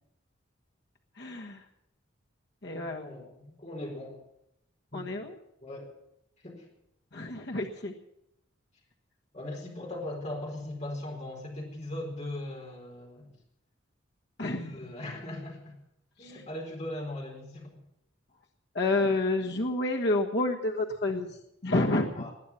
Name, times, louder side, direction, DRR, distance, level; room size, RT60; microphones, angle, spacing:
voice 1, 1.2-1.6 2.6-3.1 4.9-5.2 7.1-7.9 14.4-14.7 18.7-21.4 21.6-22.3, left 2 dB, 60° left, 1 dB, 1.4 m, -29 dB
voice 2, 2.7-4.2 4.9-5.0 5.6-5.9 6.4-6.7 9.3-13.3 14.4-15.7 16.2-17.8 22.1-22.3, left 1 dB, 35° left, 0 dB, 4.3 m, -39 dB
20.0 x 9.5 x 7.2 m, 0.81 s
head